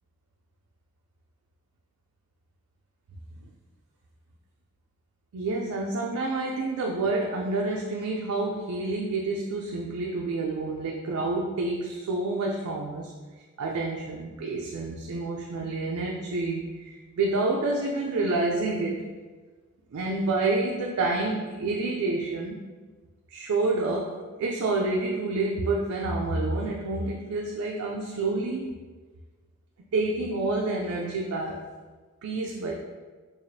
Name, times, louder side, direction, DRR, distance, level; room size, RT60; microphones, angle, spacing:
voice 1, 5.3-13.1 13.6-19.1 19.9-22.6 23.3-28.7 29.9-31.6 32.2-32.7, right 2 dB, 90° right, -1 dB, 0.4 m, -28 dB
4.8 x 2.4 x 2.6 m, 1.4 s
head